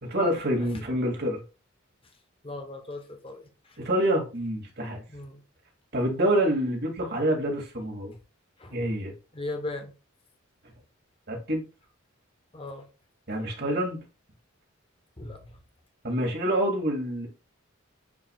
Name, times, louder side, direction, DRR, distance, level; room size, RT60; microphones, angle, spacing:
voice 1, 0.0-1.4 3.8-5.0 5.9-8.1 8.7-9.1 11.3-11.6 13.3-14.0 16.0-17.3, right 1 dB, 50° right, 2.3 m, -27 dB
voice 2, 2.4-3.8 5.1-5.4 8.6-8.8 9.3-9.9 12.5-12.9 15.2-15.6, left 2 dB, 25° left, 1.0 m, -38 dB
9.6 x 4.8 x 2.3 m
head